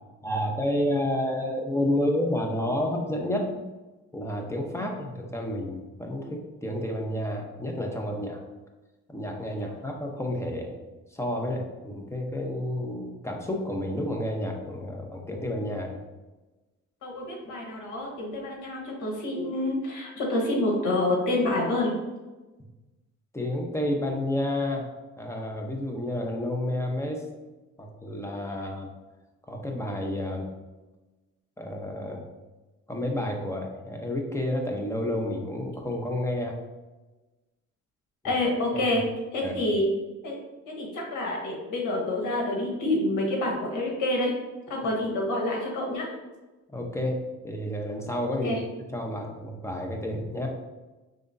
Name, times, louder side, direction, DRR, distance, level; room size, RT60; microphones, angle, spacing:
voice 1, 0.2-3.6 4.1-8.4 9.1-10.7 11.1-16.0 23.3-24.9 25.2-27.2 27.8-28.9 29.5-30.5 31.6-32.2 32.9-36.6 38.2-38.3 39.4-39.5 46.7-47.2 47.4-48.5 48.9-50.5, left 1 dB, 10° left, 1 dB, 0.9 m, -30 dB
voice 2, 17.0-21.9 38.2-39.0 39.3-39.9 40.2-40.4 40.7-44.3 44.7-46.1 48.4-48.6, left 1 dB, 80° left, -1 dB, 1.4 m, -27 dB
5.1 x 3.4 x 2.6 m, 1.1 s
cardioid pair, 90°, 30 cm